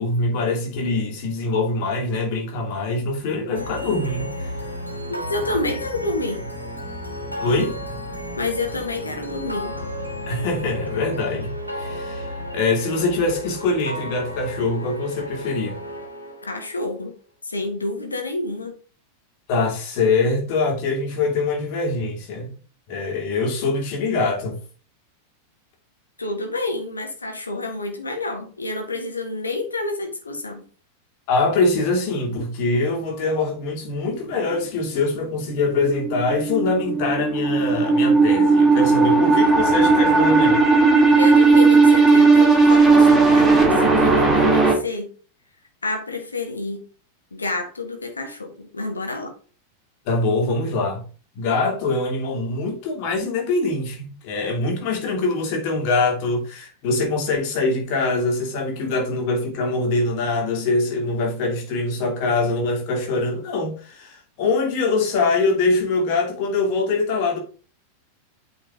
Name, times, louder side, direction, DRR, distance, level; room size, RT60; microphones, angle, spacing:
voice 1, 0.0-4.5 7.4-7.8 10.3-15.8 19.5-22.5 22.9-24.6 31.3-40.7 50.1-51.0 51.3-67.4, left 3 dB, 45° left, 2.7 m, -23 dB
sound 1, 3.5-16.8, equal, 90° right, 1.7 m, -33 dB
voice 2, 5.3-6.4 8.4-9.8 16.4-17.1 17.4-18.7 26.2-30.6 41.2-45.1 45.8-46.8 47.3-49.3, left 2 dB, 75° left, 1.7 m, -29 dB
sound 2, 35.6-44.7, right 3 dB, 5° right, 2.5 m, -16 dB
8.7 x 4.7 x 3.6 m
figure-of-eight pair, 90°, 0 cm